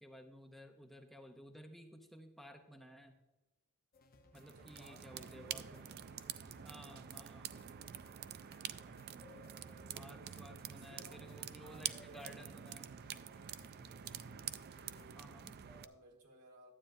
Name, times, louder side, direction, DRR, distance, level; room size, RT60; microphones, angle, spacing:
voice 1, 0.0-3.1 4.3-5.9 6.6-7.6 9.9-12.9 15.1-15.5, equal, ahead, 4 dB, 0.6 m, -55 dB
sound 1, 3.9-15.1, left 3 dB, 40° left, 0.8 m, -64 dB
sound 2, 4.3-15.9, right 10 dB, 45° right, 0.4 m, -47 dB
voice 2, 4.5-6.9 9.8-10.4 10.7-12.8 14.5-16.7, right 1 dB, 85° right, 1 dB, 1.7 m, -61 dB
12.0 x 8.8 x 2.6 m, 1.1 s
head